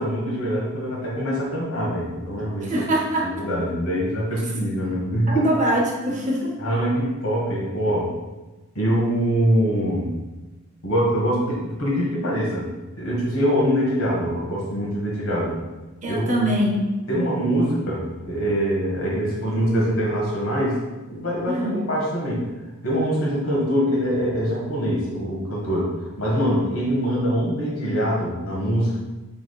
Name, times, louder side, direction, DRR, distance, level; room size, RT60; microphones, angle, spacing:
voice 1, 0.0-2.9 3.2-5.5 6.6-8.1 8.7-10.2 10.8-12.7 13.0-15.6 16.1-16.5 17.1-22.4 22.8-29.0, equal, 70° left, -4 dB, 1.5 m, -24 dB
voice 2, 2.6-3.3 5.3-6.6 16.0-16.8 21.5-21.8, right 1 dB, 35° right, -1 dB, 0.7 m, -23 dB
5.7 x 3.5 x 2.3 m, 1.1 s
head